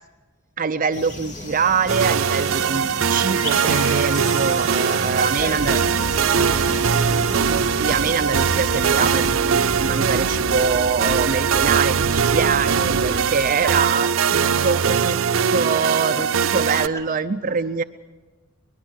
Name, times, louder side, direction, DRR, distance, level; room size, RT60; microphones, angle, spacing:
voice 1, 0.6-5.8 7.4-15.2 15.5-16.3 16.5-17.8, right 5 dB, 45° right, 9 dB, 0.6 m, -24 dB
sound 1, 0.9-9.3, left 1 dB, 40° left, 2.5 m, -35 dB
sound 2, 1.9-16.9, right 7 dB, 90° right, 0.5 m, -21 dB
voice 2, 4.7-7.0 13.1-13.3 13.6-13.7 16.1-16.8 17.5-17.6, equal, 15° left, -2 dB, 4.7 m, -37 dB
sound 3, 5.4-15.4, equal, 60° right, 4.1 m, -32 dB
23.0 x 21.0 x 6.4 m, 1.3 s
head